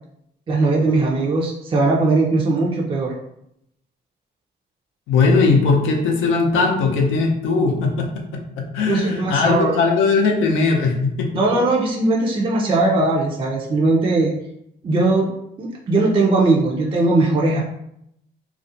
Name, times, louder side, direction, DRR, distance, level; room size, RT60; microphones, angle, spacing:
voice 1, 0.5-3.1 8.9-9.8 11.3-14.3 14.8-15.3 15.6-17.6, right 2 dB, 25° right, -2 dB, 0.4 m, -19 dB
voice 2, 5.1-11.6, left 4 dB, 90° left, 2 dB, 0.5 m, -19 dB
2.4 x 2.0 x 2.6 m, 0.77 s
cardioid pair, 90°, 20 cm